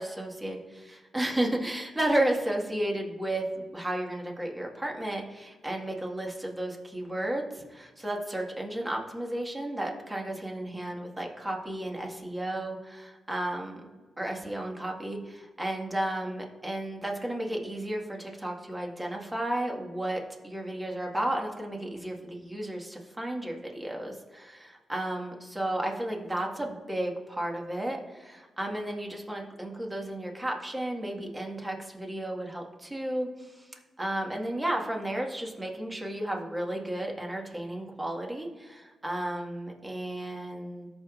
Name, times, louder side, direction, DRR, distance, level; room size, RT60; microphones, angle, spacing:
voice 1, 0.0-13.8 14.2-33.6 34.0-40.9, right 1 dB, 15° right, 0 dB, 1.7 m, -33 dB
14.0 x 4.9 x 2.5 m, 1.4 s
cardioid pair, 55°, 0 cm